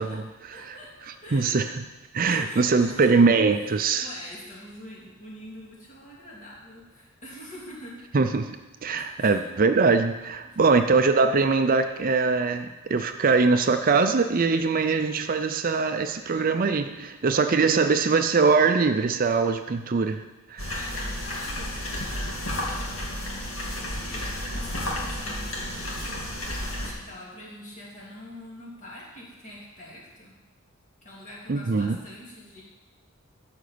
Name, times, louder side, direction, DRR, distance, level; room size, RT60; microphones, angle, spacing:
voice 1, 0.0-1.6 2.2-3.2 3.5-8.1 8.9-9.5 10.4-10.8 17.4-18.0 20.7-30.3 31.0-32.6, left 1 dB, 35° left, -5 dB, 3.1 m, -45 dB
voice 2, 1.3-1.6 2.1-4.1 8.1-20.2 20.5-20.7 31.5-32.0, right 4 dB, 45° right, 8 dB, 0.5 m, -22 dB
sound 1, 20.6-26.9, left 1 dB, 75° left, 2.2 m, -32 dB
12.5 x 5.2 x 6.8 m, 1.1 s
head